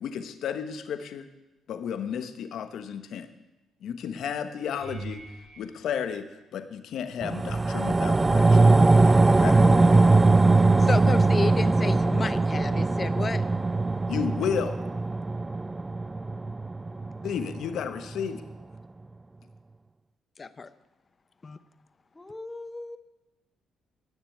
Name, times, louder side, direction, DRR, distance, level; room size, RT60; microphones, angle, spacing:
voice 1, 0.0-1.3 1.7-3.3 3.8-5.2 5.6-6.3 6.5-8.7 9.4-10.1 14.1-14.8 17.2-18.4, left 7 dB, 75° left, 9 dB, 1.3 m, -32 dB
sound 1, 4.7-7.0 7.6-8.1 8.5-8.6 13.0-13.1, right 4 dB, 80° right, 3.1 m, -44 dB
sound 2, 7.2-17.8 18.2-18.3, right 3 dB, 20° right, 0.4 m, -21 dB
voice 2, 10.8-13.4 20.4-20.7 21.4-21.6, left 4 dB, 35° left, 14 dB, 0.8 m, -32 dB
voice 3, 22.1-23.0, left 2 dB, 15° left, 9 dB, 1.3 m, -39 dB
18.0 x 6.8 x 8.7 m, 1.0 s
cardioid pair, 90°, 0 cm